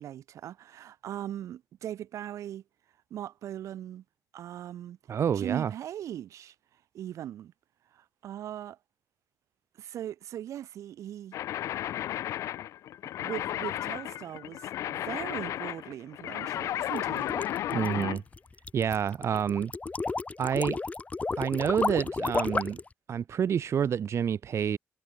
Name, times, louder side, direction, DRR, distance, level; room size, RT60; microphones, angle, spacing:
voice 1, 0.0-2.6 3.1-4.0 4.3-5.0 5.3-6.5 6.9-7.5 7.9-8.8 9.8-11.3 13.2-14.6 14.9-17.4, right 11 dB, 85° right, 1.2 m, -39 dB
voice 2, 5.1-5.7 17.7-18.2 18.7-19.7 20.4-20.8 21.4-22.8 23.1-24.8, right 8 dB, 65° right, 0.8 m, -28 dB
sound 1, 11.3-18.2, left 12 dB, 90° left, 0.8 m, -34 dB
sound 2, 16.8-22.9, left 3 dB, 30° left, 0.5 m, -32 dB
cardioid pair, 70°, 5 cm